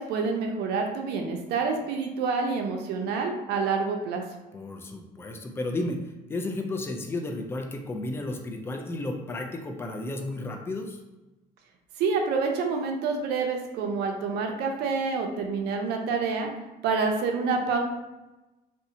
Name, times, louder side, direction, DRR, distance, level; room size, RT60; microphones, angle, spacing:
voice 1, 0.0-4.2 12.0-16.5 16.8-17.8, right 4 dB, 75° right, 3 dB, 0.5 m, -27 dB
voice 2, 4.5-11.0, left 2 dB, 15° left, 3 dB, 0.3 m, -33 dB
2.7 x 2.1 x 2.7 m, 1.1 s
cardioid pair, 110°, 17 cm